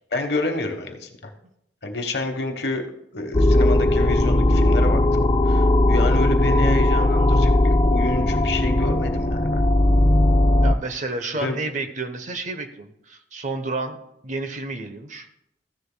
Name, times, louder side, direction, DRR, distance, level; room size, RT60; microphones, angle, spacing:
voice 1, 0.1-1.3 1.8-9.6 11.4-11.6, left 2 dB, 65° left, 5 dB, 1.2 m, -28 dB
sound 1, 3.3-10.7, left 1 dB, 25° left, 0.5 m, -18 dB
voice 2, 10.6-14.0 14.2-15.3, right 2 dB, 45° right, 8 dB, 0.9 m, -30 dB
14.5 x 10.0 x 2.2 m, 0.76 s
head